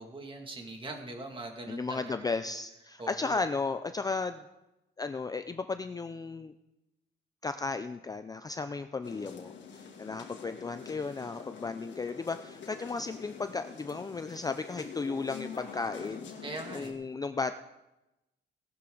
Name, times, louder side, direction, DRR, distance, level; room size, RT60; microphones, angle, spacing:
voice 1, 0.0-2.3 3.0-3.4 16.4-17.0, right 2 dB, 25° right, 3 dB, 2.1 m, -42 dB
voice 2, 1.7-4.5 5.0-6.5 7.4-16.3 16.7-17.6, left 4 dB, 20° left, 9 dB, 0.4 m, -35 dB
sound 1, 9.0-16.9, left 6 dB, 70° left, 2.5 m, -46 dB
18.0 x 12.0 x 3.9 m, 0.96 s
cardioid pair, 135°, 19 cm